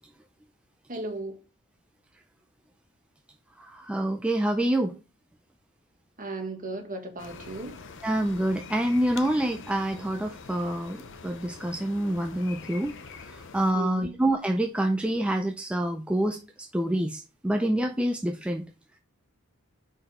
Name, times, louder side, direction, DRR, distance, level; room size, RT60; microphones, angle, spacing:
voice 1, 0.9-1.4 6.2-7.7 13.7-14.1, right 2 dB, 40° right, 1.4 m, -35 dB
voice 2, 3.6-4.9 8.0-18.6, right 1 dB, 5° right, 0.4 m, -27 dB
sound 1, 7.2-13.7, left 4 dB, 60° left, 0.7 m, -44 dB
5.4 x 4.6 x 4.2 m
head